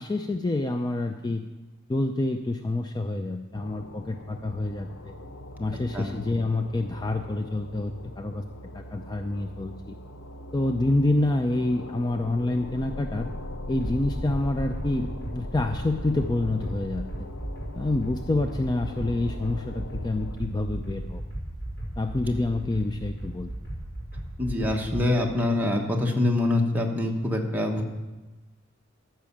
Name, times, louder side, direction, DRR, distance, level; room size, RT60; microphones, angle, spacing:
voice 1, 0.0-1.5 1.9-5.1 5.6-8.4 8.7-9.9 10.5-13.3 13.7-17.0 17.7-21.2 22.0-23.5, left 2 dB, 20° left, 6 dB, 0.4 m, -27 dB
sound 1, 3.5-20.4, left 1 dB, 85° left, 0.8 m, -40 dB
sound 2, 13.8-25.1, right 1 dB, 55° left, 4.5 m, -36 dB
voice 2, 24.4-27.9, left 2 dB, 10° right, 0 dB, 1.2 m, -25 dB
13.5 x 5.7 x 7.2 m, 1.2 s
head